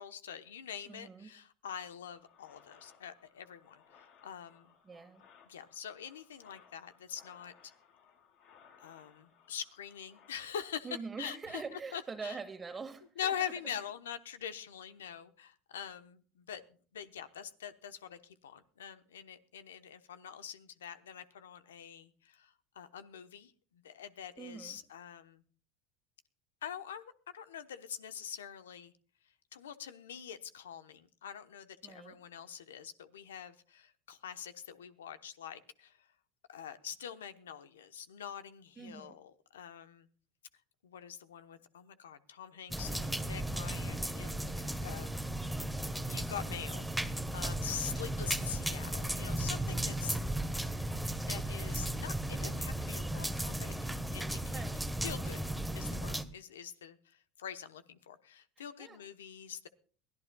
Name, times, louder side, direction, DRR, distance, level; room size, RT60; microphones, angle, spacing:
voice 1, 0.0-4.7 5.5-7.5 8.8-12.4 13.2-25.4 26.6-28.9 29.5-36.1 36.5-40.1 40.8-45.1 46.1-50.2 51.3-54.6 55.0-55.4 55.7-59.7, left 8 dB, 90° left, 11 dB, 1.0 m, -44 dB
voice 2, 0.9-1.3 4.8-5.2 10.8-13.5 24.4-24.8 31.8-32.1 38.8-39.2 47.8-48.1 54.5-54.8 58.8-59.0, right 5 dB, 25° right, 5 dB, 1.7 m, -44 dB
sound 1, 2.1-10.7, left 7 dB, 75° left, 5.3 m, -63 dB
sound 2, 42.7-56.2, right 1 dB, ahead, 1.2 m, -35 dB
22.5 x 14.5 x 2.3 m, 0.41 s
hypercardioid pair, 90°, 0 cm